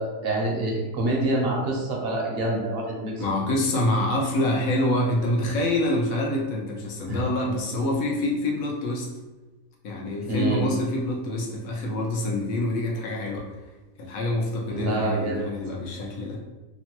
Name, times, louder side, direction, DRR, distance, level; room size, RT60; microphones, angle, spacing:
voice 1, 0.0-3.2 7.1-7.2 10.3-10.6 14.7-15.4, right 2 dB, 60° right, -1 dB, 0.7 m, -26 dB
voice 2, 3.2-9.1 9.8-13.5 14.0-16.4, left 1 dB, 75° left, -1 dB, 1.1 m, -26 dB
3.0 x 2.1 x 2.9 m, 1.1 s
omnidirectional pair, 1.5 m